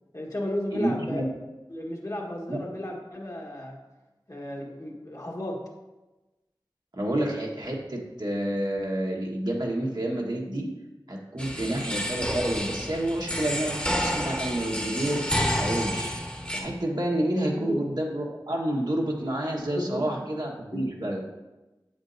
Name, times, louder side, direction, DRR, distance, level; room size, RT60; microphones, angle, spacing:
voice 1, 0.1-1.3 1.7-3.8 4.3-5.6 17.5-17.8 19.7-20.1 20.7-20.9, left 1 dB, 45° left, -2 dB, 1.4 m, -33 dB
voice 2, 0.7-1.3 2.5-2.6 6.9-10.7 11.1-15.2 15.6-16.1 16.5-21.2, right 1 dB, 60° right, -2 dB, 1.4 m, -29 dB
sound 1, 11.4-16.6, equal, 15° left, 1.2 m, -29 dB
8.0 x 7.3 x 2.6 m, 1.1 s
wide cardioid pair, 45°, 8 cm